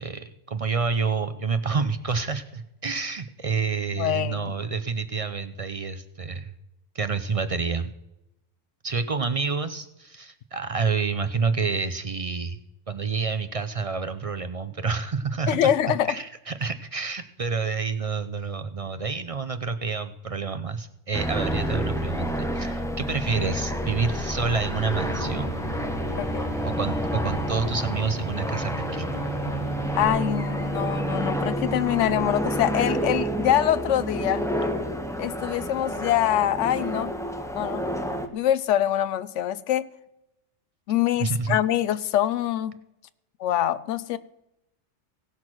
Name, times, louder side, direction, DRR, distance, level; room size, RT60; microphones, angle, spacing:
voice 1, 0.0-6.5 6.9-7.9 8.8-12.6 12.9-15.7 16.1-25.6 26.6-29.1 41.2-41.6, right 5 dB, 50° right, 10 dB, 0.4 m, -28 dB
voice 2, 4.0-4.5 15.5-16.1 26.2-26.6 30.0-34.5 35.2-37.1 37.5-37.9 38.3-39.9 40.9-42.8 43.4-44.2, left 11 dB, 75° left, 16 dB, 0.9 m, -24 dB
sound 1, 21.1-38.3, equal, 5° left, 0.6 m, -29 dB
sound 2, 24.9-30.1, right 1 dB, 25° left, 3.2 m, -36 dB
17.0 x 6.2 x 6.0 m, 0.89 s
omnidirectional pair, 1.3 m